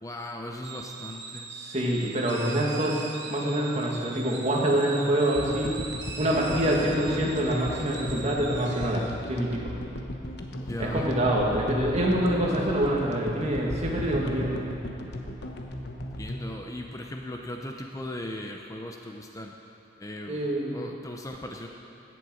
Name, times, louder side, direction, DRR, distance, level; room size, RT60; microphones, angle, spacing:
voice 1, 0.0-1.5 10.7-11.1 16.2-19.5 20.0-20.4 20.7-21.7, left 1 dB, 15° left, 2 dB, 0.6 m, -38 dB
sound 1, 0.6-9.2, right 4 dB, 60° right, 1.3 m, -41 dB
voice 2, 1.6-5.8 6.2-9.6 10.8-14.5 20.3-20.8, right 1 dB, 35° right, -2 dB, 2.0 m, -26 dB
sound 2, 5.3-17.7, left 1 dB, 60° left, 1.0 m, -37 dB
17.0 x 7.7 x 6.4 m, 2.8 s
head